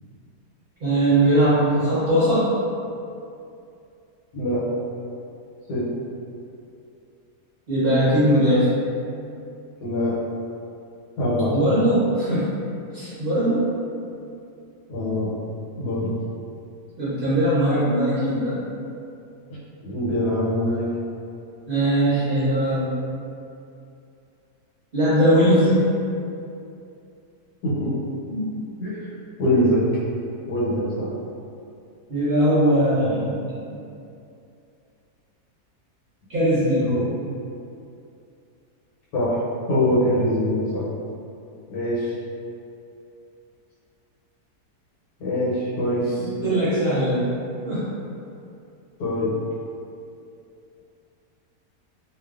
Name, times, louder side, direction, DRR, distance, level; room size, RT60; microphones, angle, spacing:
voice 1, 0.8-2.5 7.7-8.7 11.5-12.5 12.9-13.6 17.0-18.6 21.7-22.9 24.9-25.8 28.3-28.6 32.1-33.7 36.3-36.9 46.4-47.3 47.7-47.9, right 1 dB, 55° right, -13 dB, 0.6 m, -20 dB
voice 2, 9.8-10.2 11.2-11.5 14.9-15.3 15.8-16.2 19.8-20.9 27.6-28.0 28.8-29.1 29.4-29.9 30.5-31.1 36.8-37.1 39.1-39.4 39.7-40.9 41.7-42.2 45.2-46.3 49.0-49.3, left 1 dB, 85° left, -9 dB, 1.3 m, -23 dB
2.5 x 2.4 x 2.3 m, 2.6 s
omnidirectional pair, 1.7 m